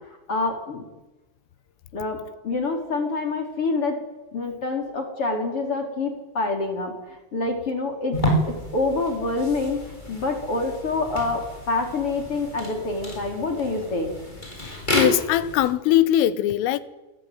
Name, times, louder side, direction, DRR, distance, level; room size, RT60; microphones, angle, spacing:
voice 1, 0.3-0.8 1.9-4.0 4.3-8.2 8.5-9.8 10.1-14.1, left 3 dB, 30° left, 4.7 m, -26 dB
sound 1, 8.1-15.7, equal, 10° left, 7.8 m, -30 dB
voice 2, 14.6-16.8, left 13 dB, 80° left, 3.8 m, -21 dB
28.5 x 20.5 x 9.5 m
omnidirectional pair, 5.8 m